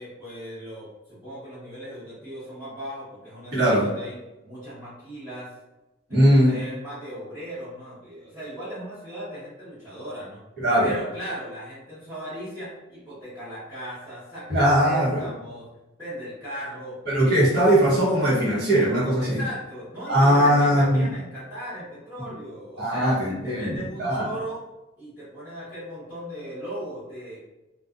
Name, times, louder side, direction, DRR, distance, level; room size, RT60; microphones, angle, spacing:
voice 1, 0.0-4.1 4.4-5.5 6.1-10.4 10.8-15.7 16.0-17.0 19.2-24.6 25.0-27.4, equal, 10° right, -16 dB, 0.9 m, -37 dB
voice 2, 3.5-3.9 6.1-6.6 10.6-10.9 14.5-15.3 17.1-19.4 20.1-21.1 22.8-24.3, equal, 55° right, -7 dB, 1.1 m, -20 dB
2.6 x 2.3 x 2.4 m, 1.0 s
head